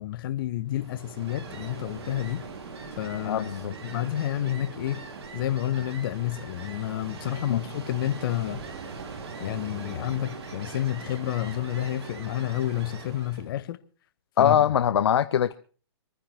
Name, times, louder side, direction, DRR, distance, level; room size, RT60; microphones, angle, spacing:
voice 1, 0.0-2.4 3.0-3.5 3.8-5.0 5.3-8.6 9.4-13.8 14.4-14.6, left 13 dB, 50° left, 1.4 m, -30 dB
Ocean, 0.7-13.5, right 4 dB, 65° right, 3.3 m, -41 dB
voice 2, 3.2-3.8 7.5-7.6 14.4-15.5, left 9 dB, 70° left, 0.7 m, -22 dB
25.5 x 10.0 x 4.5 m
hypercardioid pair, 125°, 14 cm